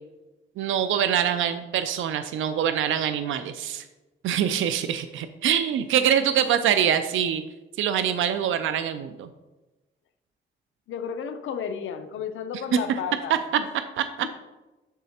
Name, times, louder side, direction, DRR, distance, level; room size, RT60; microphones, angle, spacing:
voice 1, 0.6-3.8 4.2-7.4 7.8-9.3 13.3-13.4 14.0-14.1, right 9 dB, 75° right, 10 dB, 0.4 m, -24 dB
voice 2, 10.9-13.7, left 7 dB, 80° left, 8 dB, 0.6 m, -33 dB
7.2 x 6.5 x 2.8 m, 1.1 s
cardioid pair, 110°, 20 cm